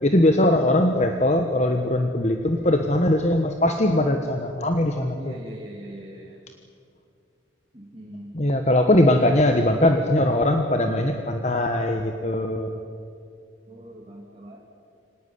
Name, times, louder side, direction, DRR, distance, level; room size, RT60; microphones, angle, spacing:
voice 1, 0.0-5.3 8.3-12.8, left 1 dB, 35° left, 5 dB, 1.2 m, -21 dB
voice 2, 5.1-6.4 7.7-8.3 10.2-10.4 11.9-12.3 13.7-14.6, right 1 dB, 30° right, -2 dB, 2.7 m, -42 dB
25.0 x 18.5 x 9.6 m, 2.4 s
head